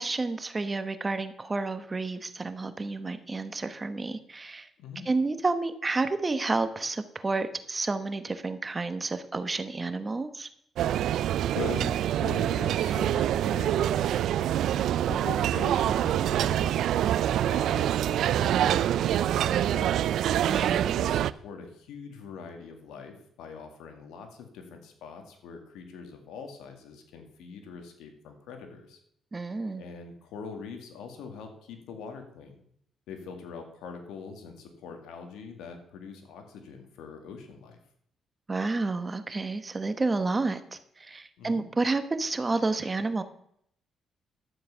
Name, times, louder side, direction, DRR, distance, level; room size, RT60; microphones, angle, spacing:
voice 1, 0.0-4.7 5.1-10.5 20.4-20.9 29.3-29.8 38.5-43.2, right 3 dB, 25° right, 10 dB, 1.2 m, -30 dB
sound 1, 10.8-21.3, right 11 dB, 75° right, 0.4 m, -25 dB
voice 2, 11.5-14.6 15.1-20.2 20.9-29.0 29.7-32.5 33.1-37.8 41.4-41.7, left 5 dB, 90° left, 5 dB, 2.0 m, -43 dB
12.0 x 7.4 x 5.7 m, 0.70 s
cardioid pair, 90°, 0 cm